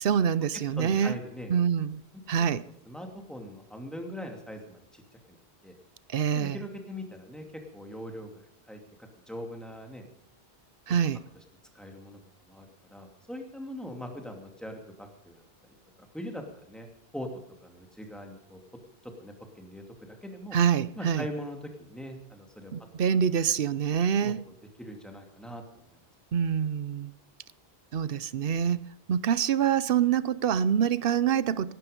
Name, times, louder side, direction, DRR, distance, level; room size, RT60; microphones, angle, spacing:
voice 1, 0.0-1.2 1.5-2.0 2.3-2.6 6.1-6.6 10.9-11.2 20.5-21.2 22.7-24.4 26.3-27.1 27.9-28.8 29.1-31.7, right 8 dB, 65° right, 17 dB, 0.9 m, -25 dB
voice 2, 0.8-1.6 2.4-2.5 2.9-5.0 5.3-5.4 5.6-5.7 6.3-7.4 7.7-8.4 8.7-8.8 9.3-10.0 11.7-12.2 12.5-15.4 16.1-16.9 17.1-17.3 17.6-18.6 19.0-20.6 21.0-22.7 24.2-25.6, equal, ahead, 3 dB, 2.6 m, -41 dB
18.5 x 12.0 x 5.2 m, 0.72 s
omnidirectional pair, 1.0 m